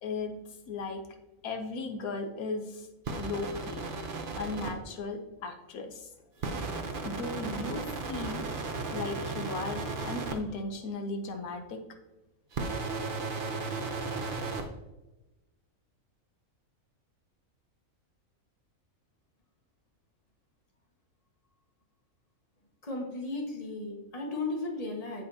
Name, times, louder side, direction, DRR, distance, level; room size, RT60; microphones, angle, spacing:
voice 1, 0.0-0.4 0.7-1.0 1.4-2.9 3.1-3.8 4.4-6.1 7.0-8.5 8.9-11.8, left 3 dB, 85° left, 5 dB, 1.3 m, -36 dB
sound 1, 3.0-4.7 6.4-10.3 12.5-14.6, right 3 dB, 45° right, 0.9 m, -35 dB
voice 2, 22.8-25.2, left 2 dB, 25° left, 0 dB, 1.5 m, -35 dB
15.5 x 5.2 x 2.8 m, 1.0 s
omnidirectional pair, 1.5 m